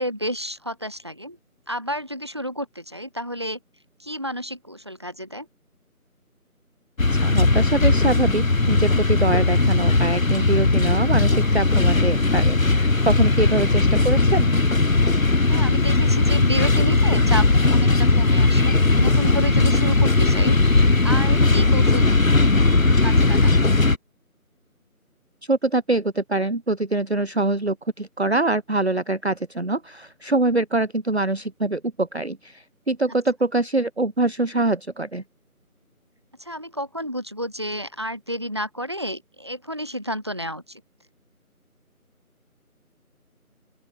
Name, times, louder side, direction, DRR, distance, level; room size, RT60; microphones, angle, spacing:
voice 1, 0.0-1.4 1.7-3.6 4.0-5.5 15.5-20.6 21.0-22.1 23.0-23.8 36.4-40.8, equal, 20° right, 1.7 m, -31 dB
sound 1, 7.0-24.0, left 3 dB, 60° left, 2.0 m, -18 dB
voice 2, 7.1-14.6 25.5-35.2, right 2 dB, 45° right, 0.7 m, -24 dB
open air
figure-of-eight pair, 170°, 44 cm